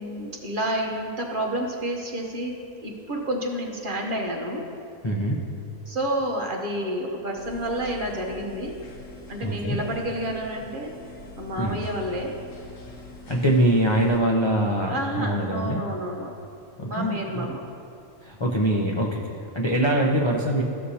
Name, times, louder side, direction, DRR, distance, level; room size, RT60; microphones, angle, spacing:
voice 1, 0.0-4.7 5.9-8.8 9.3-10.9 11.4-12.4 14.9-16.3 16.9-17.6, right 1 dB, 45° right, 0 dB, 1.0 m, -30 dB
voice 2, 5.0-5.4 9.4-9.8 11.6-11.8 13.3-15.8 16.8-17.5 18.2-20.6, right 1 dB, 40° left, -2 dB, 0.4 m, -23 dB
sound 1, 7.4-14.2, left 2 dB, 85° left, 1.4 m, -44 dB
14.0 x 6.4 x 2.8 m, 2.6 s
omnidirectional pair, 1.4 m